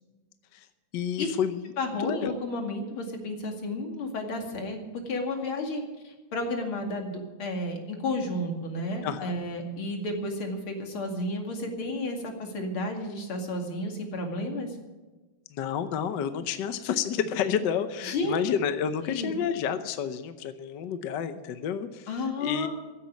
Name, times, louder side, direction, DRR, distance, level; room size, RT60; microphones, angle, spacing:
voice 1, 0.9-1.6 2.0-2.3 9.0-9.3 15.5-22.1 22.4-22.7, left 8 dB, 65° left, 10 dB, 1.4 m, -30 dB
voice 2, 1.8-4.8 5.1-14.8 18.0-18.4 19.1-19.3 22.1-22.7, left 2 dB, 85° left, 3 dB, 3.2 m, -32 dB
15.5 x 8.5 x 9.4 m, 1.2 s
omnidirectional pair, 2.2 m